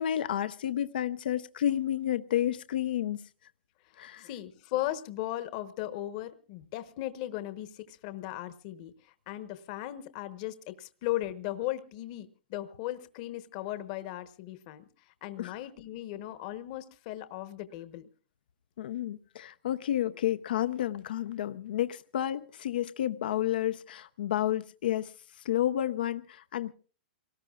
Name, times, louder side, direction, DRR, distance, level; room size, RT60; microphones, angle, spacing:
voice 1, 0.0-3.2 4.0-4.3 15.4-15.6 18.8-26.7, left 11 dB, 75° left, 0.7 m, -31 dB
voice 2, 4.2-18.1, left 14 dB, 50° left, 1.1 m, -37 dB
27.5 x 18.5 x 2.4 m
hypercardioid pair, 135°, 5 cm